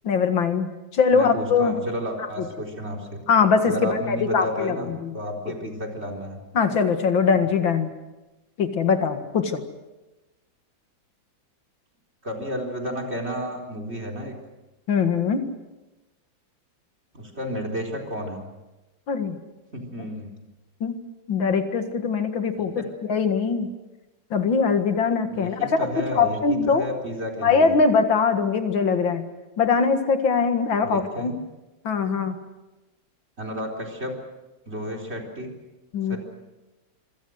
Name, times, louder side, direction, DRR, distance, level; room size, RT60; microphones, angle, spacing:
voice 1, 0.0-1.7 3.3-4.7 5.0-5.1 6.5-7.9 8.6-9.6 14.9-15.4 19.1-19.4 20.8-20.9 21.3-23.7 24.3-26.9 27.4-29.2 29.6-31.3 31.8-32.4 35.9-36.2, left 5 dB, 80° left, 7 dB, 2.6 m, -22 dB
voice 2, 1.1-3.2 3.6-6.4 12.2-14.3 17.1-18.4 19.7-20.3 22.6-22.9 25.3-27.7 30.8-31.3 33.4-34.1 34.6-35.5 36.1-36.2, equal, 30° right, 4 dB, 4.4 m, -32 dB
26.0 x 25.0 x 6.4 m, 1.1 s
omnidirectional pair, 2.1 m